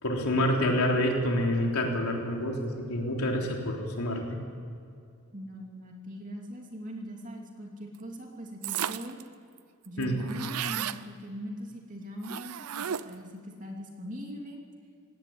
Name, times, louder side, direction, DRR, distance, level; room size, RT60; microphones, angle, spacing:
voice 1, 0.0-4.4 10.0-10.2, left 1 dB, 85° left, 1 dB, 3.6 m, -27 dB
voice 2, 5.3-9.2 9.8-14.6, equal, 35° right, 1 dB, 2.9 m, -41 dB
sound 1, 8.6-9.2 9.6-9.7 9.8-11.0 12.2-13.3, right 9 dB, 85° right, 0.6 m, -34 dB
19.5 x 17.0 x 8.7 m, 2.4 s
head